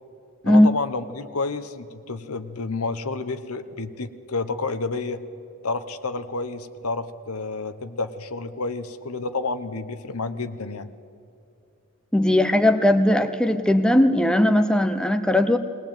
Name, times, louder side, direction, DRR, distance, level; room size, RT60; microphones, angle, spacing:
voice 1, 0.4-5.2 5.6-10.9, left 3 dB, 85° left, 11 dB, 1.1 m, -30 dB
voice 2, 12.1-15.6, left 1 dB, 5° left, 8 dB, 0.8 m, -18 dB
21.0 x 18.5 x 9.0 m, 2.5 s
head